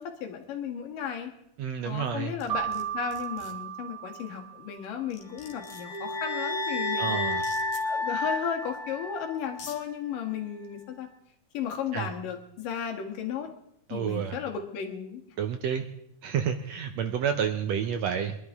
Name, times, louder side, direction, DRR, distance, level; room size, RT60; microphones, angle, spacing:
voice 1, 0.0-1.3 1.8-7.2 7.8-11.1 11.5-13.5 13.9-15.2, left 8 dB, 85° left, 4 dB, 3.2 m, -34 dB
voice 2, 1.6-2.3 7.0-7.4 11.9-12.1 13.9-14.4 15.4-15.8 16.2-18.4, right 8 dB, 75° right, 7 dB, 1.6 m, -29 dB
sound 1, 2.4-2.8 3.1-3.5 4.7-4.8 5.1-6.0 7.3-7.8 8.9-9.0 9.4-9.8, left 6 dB, 70° left, 3.2 m, -45 dB
Keyboard (musical), 2.5-5.0, right 11 dB, 35° right, 1.8 m, -35 dB
sound 2, 5.4-9.7, left 2 dB, 45° left, 1.3 m, -31 dB
24.5 x 11.5 x 3.5 m, 0.79 s
omnidirectional pair, 3.8 m